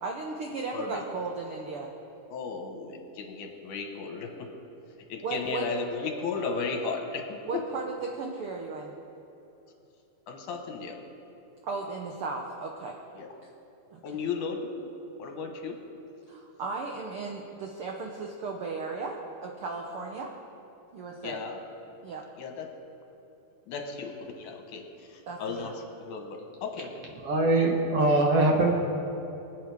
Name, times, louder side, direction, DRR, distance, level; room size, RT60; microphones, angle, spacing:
voice 1, 0.0-1.9 5.2-5.7 7.5-8.9 11.6-13.0 13.9-14.3 16.3-20.3 20.9-21.4 22.0-22.2 25.2-25.7, right 4 dB, 90° right, 1 dB, 1.2 m, -36 dB
voice 2, 0.7-1.0 2.3-4.3 5.1-7.4 10.3-11.0 13.2-13.3 14.0-14.7 15.2-15.7 21.2-21.6 22.4-22.7 23.7-24.8 25.1-25.7 26.0-26.9, left 5 dB, 70° left, 3 dB, 2.7 m, -35 dB
voice 3, 27.2-28.7, right 2 dB, 60° right, 1 dB, 1.8 m, -22 dB
24.5 x 8.8 x 3.5 m, 2.9 s
omnidirectional pair, 3.7 m